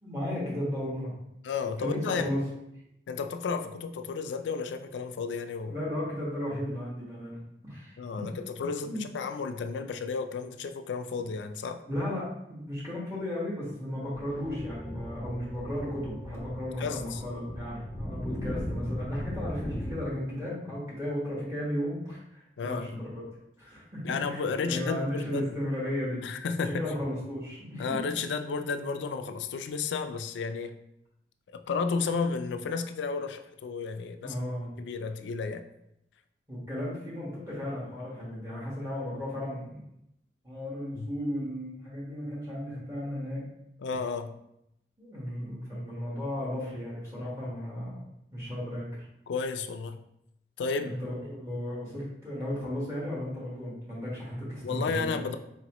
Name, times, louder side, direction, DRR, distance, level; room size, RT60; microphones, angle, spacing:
voice 1, 0.0-1.1 1.8-2.4 5.6-7.4 7.6-8.2 8.8-9.0 11.8-23.2 23.6-26.2 26.6-27.8 34.2-34.7 36.5-39.8 40.4-43.5 45.0-48.0 48.3-48.9 50.8-55.2, left 1 dB, 15° right, -8 dB, 1.2 m, -35 dB
voice 2, 1.4-2.3 3.1-5.8 8.0-11.8 16.8-17.2 22.6-23.0 24.0-25.5 26.2-26.8 27.8-30.8 31.5-34.3 34.8-35.6 41.0-41.1 43.8-44.4 49.3-50.0 50.6-51.0 54.6-55.4, left 5 dB, 90° left, 9 dB, 0.3 m, -32 dB
sound 1, 14.0-20.0, equal, 25° left, 0.4 m, -38 dB
4.3 x 2.9 x 2.9 m, 0.80 s
head